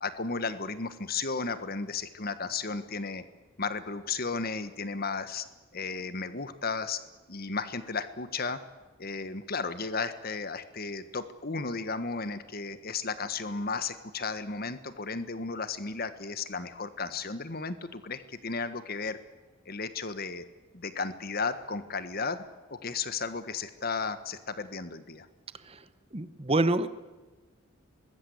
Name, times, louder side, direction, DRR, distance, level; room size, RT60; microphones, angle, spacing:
voice 1, 0.0-3.2 3.6-5.4 5.7-7.0 7.3-8.6 9.0-19.2 19.6-20.4 20.7-22.4 22.7-25.3, left 4 dB, 45° left, 11 dB, 1.4 m, -34 dB
voice 2, 26.1-26.9, right 2 dB, 30° right, 12 dB, 1.1 m, -27 dB
24.0 x 21.0 x 8.1 m, 1.2 s
head